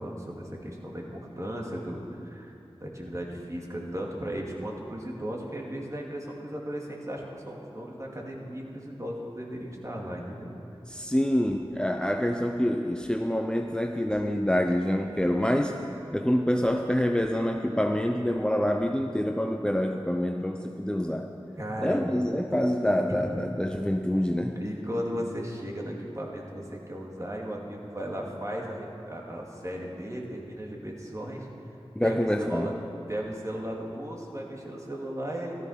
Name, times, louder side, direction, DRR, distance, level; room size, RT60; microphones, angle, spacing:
voice 1, 0.0-2.5 2.8-10.5 21.6-22.0 24.6-31.5 32.0-32.7 33.1-35.7, equal, 30° right, -2 dB, 2.6 m, -36 dB
voice 2, 10.9-15.7 16.1-21.3 21.8-24.6 32.0-32.7, equal, 10° left, 3 dB, 0.7 m, -26 dB
14.0 x 13.5 x 5.8 m, 2.8 s
wide cardioid pair, 50°, 10 cm